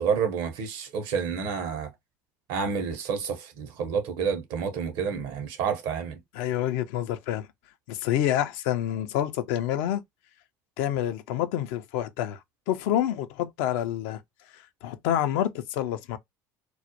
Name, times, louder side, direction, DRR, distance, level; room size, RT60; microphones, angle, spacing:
voice 1, 0.0-1.9 2.5-6.2, right 6 dB, 65° right, 0.7 m, -29 dB
voice 2, 6.3-7.5 7.9-10.0 10.8-12.4 12.7-14.2 14.8-16.2, left 11 dB, 70° left, 0.4 m, -27 dB
2.3 x 2.1 x 2.8 m
hypercardioid pair, 65°, 9 cm